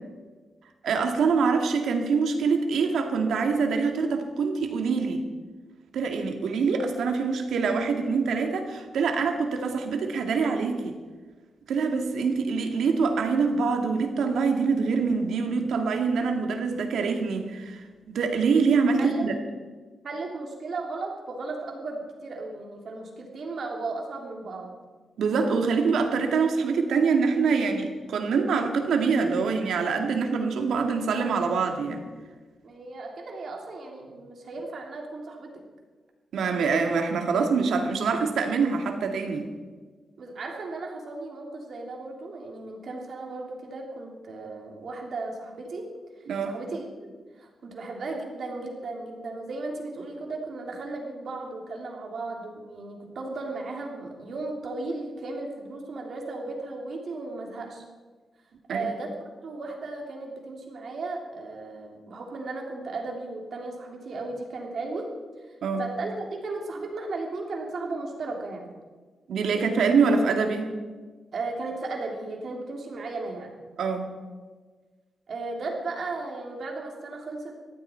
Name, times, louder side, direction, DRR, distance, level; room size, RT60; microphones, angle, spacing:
voice 1, 0.8-5.2 5.9-11.0 11.7-19.3 25.2-32.1 36.3-39.5 46.3-46.6 58.7-58.9 65.6-65.9 69.3-70.8 73.8-74.2, right 5 dB, 85° right, 4 dB, 2.2 m, -25 dB
voice 2, 20.0-24.7 32.6-35.6 40.2-45.9 46.5-47.1 47.4-57.8 58.7-65.1 65.5-68.7 71.3-73.5 75.3-77.6, right 3 dB, 50° right, 1 dB, 3.2 m, -35 dB
20.5 x 14.5 x 4.6 m, 1.4 s
wide cardioid pair, 165°, 0 cm